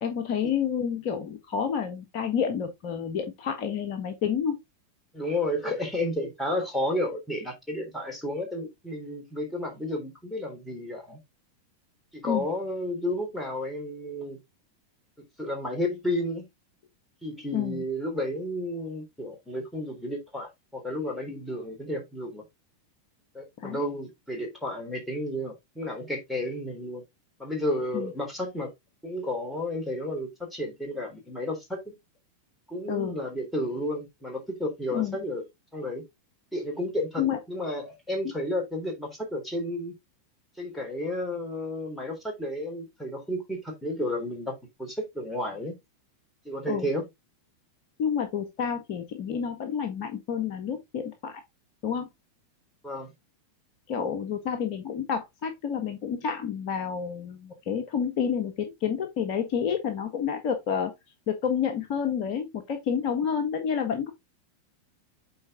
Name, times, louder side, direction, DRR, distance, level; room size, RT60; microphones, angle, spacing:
voice 1, 0.0-4.6 12.2-12.5 17.5-17.8 23.6-23.8 27.9-28.1 32.9-33.2 34.9-35.2 37.2-37.4 46.7-46.9 48.0-51.4 51.8-52.1 53.9-58.5 58.8-60.9 61.3-64.1, left 7 dB, 45° left, 1.3 m, -29 dB
voice 2, 5.1-11.2 12.1-14.4 15.4-16.5 17.2-22.4 23.3-27.0 27.4-28.7 29.0-31.9 32.7-35.5 35.7-36.0 36.5-39.9 40.6-45.8 46.5-47.1 52.8-53.1, left 1 dB, 5° left, 3.5 m, -32 dB
8.6 x 4.4 x 3.6 m
figure-of-eight pair, 90°, 0 cm